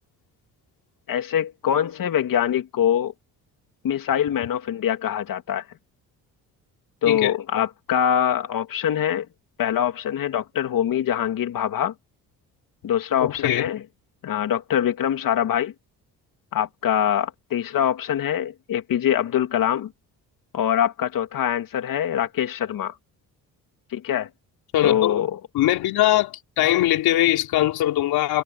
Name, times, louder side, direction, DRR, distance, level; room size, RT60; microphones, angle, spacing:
voice 1, 1.1-3.1 3.8-5.6 7.0-9.3 9.6-11.9 12.8-13.8 14.2-15.7 16.5-19.9 20.5-23.0 23.9-24.3 24.8-25.4, left 10 dB, 65° left, 2.8 m, -23 dB
voice 2, 13.2-13.7 24.7-25.2 25.5-28.4, left 14 dB, 80° left, 4.3 m, -21 dB
cardioid pair, 80°, 37 cm